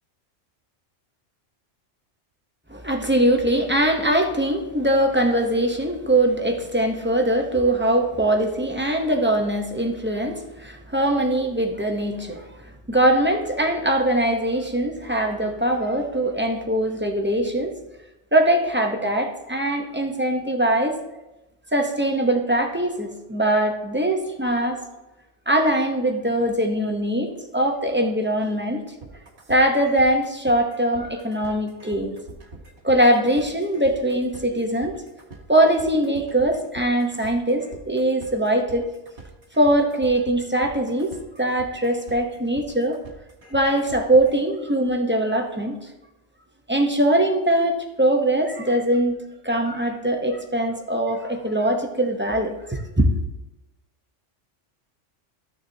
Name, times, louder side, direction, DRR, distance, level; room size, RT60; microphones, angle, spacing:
voice 1, 2.7-17.7 18.3-21.0 21.7-24.8 25.5-28.8 29.5-32.1 32.8-35.0 35.5-38.9 39.6-43.0 43.5-45.9 46.7-49.2 49.4-53.1, right 1 dB, 10° right, 3 dB, 0.6 m, -22 dB
sound 1, 29.0-44.4, right 3 dB, 50° right, 1.3 m, -44 dB
13.5 x 6.6 x 2.7 m, 1.0 s
omnidirectional pair, 1.2 m